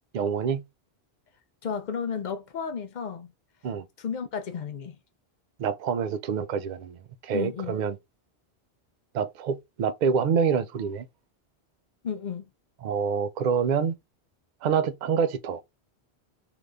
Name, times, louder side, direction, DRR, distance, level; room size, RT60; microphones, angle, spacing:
voice 1, 0.1-0.6 3.6-3.8 5.6-8.0 9.1-11.1 12.8-14.0 14.6-15.6, right 6 dB, 55° right, 0.5 m, -26 dB
voice 2, 1.6-3.3 4.0-5.0 7.3-7.8 12.0-12.5, left 6 dB, 55° left, 0.6 m, -33 dB
3.3 x 2.9 x 2.4 m
omnidirectional pair, 1.1 m